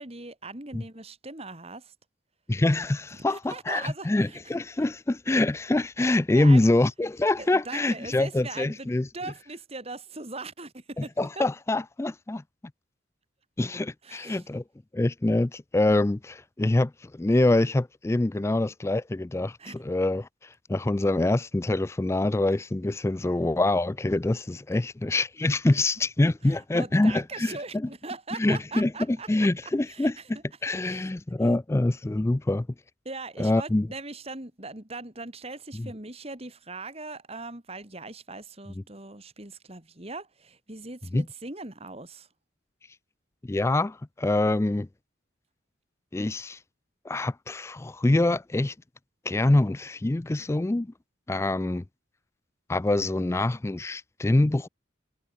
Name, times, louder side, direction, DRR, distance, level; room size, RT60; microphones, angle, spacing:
voice 1, 0.0-1.9 3.3-4.4 6.3-6.7 7.4-11.5 14.0-14.4 19.6-19.8 26.4-29.3 29.9-30.2 30.8-31.1 31.4-31.5 33.0-42.3, right 3 dB, 30° right, 2.8 m, -40 dB
voice 2, 2.5-9.1 11.0-12.4 13.6-14.6 14.9-27.9 28.4-30.1 30.6-32.7 33.4-33.9 35.8-35.9 41.1-41.2 43.5-44.9 46.1-46.6 47.1-48.7 49.3-50.9 51.3-51.8 52.7-54.7, left 2 dB, 15° left, 0.3 m, -25 dB
head